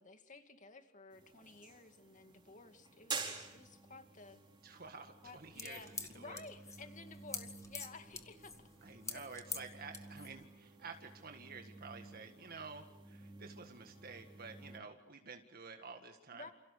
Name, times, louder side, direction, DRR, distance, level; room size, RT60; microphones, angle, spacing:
voice 1, 0.0-4.4 5.2-8.5 8.8-9.2 16.3-16.5, left 3 dB, 40° left, 7 dB, 2.4 m, -54 dB
sound 1, 1.1-14.8, right 4 dB, 25° right, 4.8 m, -51 dB
voice 2, 4.6-6.4 8.8-16.5, right 4 dB, 50° right, 5 dB, 1.8 m, -51 dB
sound 2, 5.3-10.4, left 4 dB, 15° left, 1.8 m, -46 dB
29.0 x 28.5 x 6.9 m, 0.75 s
head